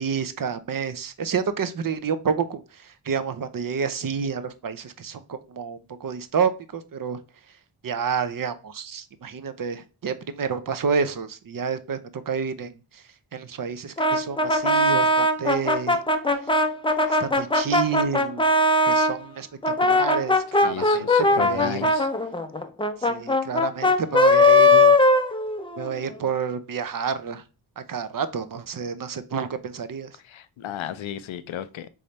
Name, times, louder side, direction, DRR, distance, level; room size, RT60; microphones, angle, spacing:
voice 1, 0.0-7.2 7.8-13.0 13.3-16.0 17.1-18.4 18.9-21.9 23.0-25.0 25.8-27.4 27.8-30.2, right 6 dB, 45° right, 0.6 m, -29 dB
Brass instrument, 14.0-19.2 19.6-25.9, left 2 dB, 10° left, 0.5 m, -20 dB
voice 2, 20.6-22.1 30.3-31.9, left 10 dB, 75° left, 0.6 m, -34 dB
3.6 x 3.3 x 4.0 m
cardioid pair, 50°, 48 cm